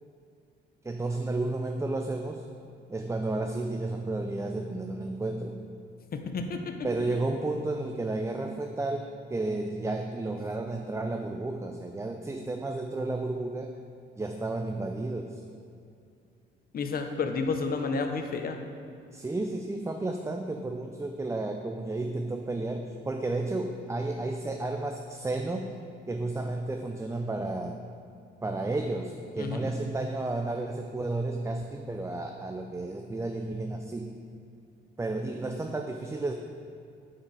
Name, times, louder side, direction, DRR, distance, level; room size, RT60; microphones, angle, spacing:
voice 1, 0.8-2.4 2.9-5.6 6.8-13.8 14.2-15.4 19.1-25.7 26.1-27.8 28.4-34.1 35.0-36.3, right 2 dB, 15° right, 4 dB, 0.5 m, -32 dB
voice 2, 6.1-6.8 16.7-18.6 29.4-29.7, left 4 dB, 50° left, 5 dB, 0.8 m, -31 dB
8.7 x 4.6 x 4.8 m, 2.5 s
cardioid pair, 90°, 20 cm